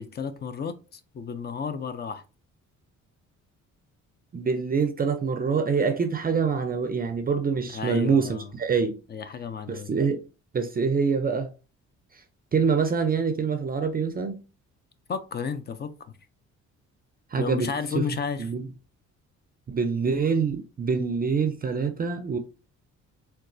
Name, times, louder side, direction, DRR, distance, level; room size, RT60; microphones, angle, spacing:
voice 1, 0.0-2.2 7.7-8.5 9.1-9.9 15.1-16.1 17.4-18.5, left 6 dB, 35° left, 0.4 m, -32 dB
voice 2, 4.3-9.0 9.7-10.2 10.5-11.5 12.5-14.4 17.3-17.7 17.9-18.0 18.4-18.6 19.7-22.4, right 5 dB, 30° right, 0.4 m, -25 dB
3.9 x 2.3 x 2.5 m
cardioid pair, 90°, 30 cm